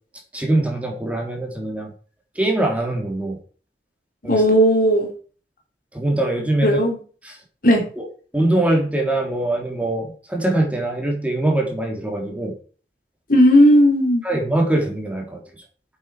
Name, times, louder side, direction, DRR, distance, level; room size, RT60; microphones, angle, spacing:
voice 1, 0.3-1.9 2.4-3.4 4.2-4.4 5.9-6.8 7.2-7.4 8.0-8.1 8.3-12.5 14.2-15.4, right 1 dB, 10° right, 0 dB, 3.6 m, -22 dB
voice 2, 4.3-5.1 6.6-7.0 7.6-7.8 13.3-14.2, equal, 50° left, 1 dB, 4.0 m, -15 dB
11.0 x 8.6 x 5.1 m, 0.40 s
head